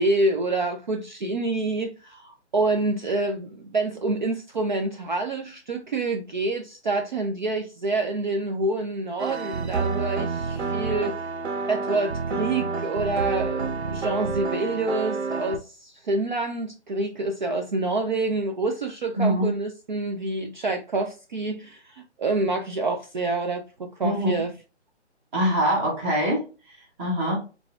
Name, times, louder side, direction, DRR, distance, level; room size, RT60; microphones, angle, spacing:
voice 1, 0.0-11.2 11.7-24.5, right 2 dB, 45° right, 0.4 m, -27 dB
sound 1, 9.2-15.6, right 4 dB, 65° right, 0.8 m, -29 dB
voice 2, 19.2-19.5 24.0-24.3 25.3-26.5 27.0-27.4, equal, 10° right, 0.7 m, -23 dB
3.9 x 3.5 x 2.4 m
figure-of-eight pair, 150°, 35 cm